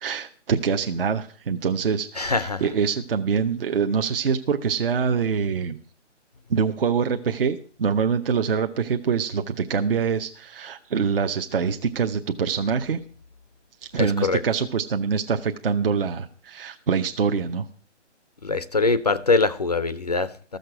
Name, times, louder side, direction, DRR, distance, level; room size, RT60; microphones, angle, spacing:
voice 1, 0.0-5.8 6.5-13.0 13.9-17.7, right 6 dB, 50° right, 0.8 m, -24 dB
voice 2, 2.2-2.6 14.0-14.4 18.4-20.6, left 3 dB, 35° left, 0.5 m, -23 dB
14.0 x 6.6 x 7.6 m
hypercardioid pair, 160°, 36 cm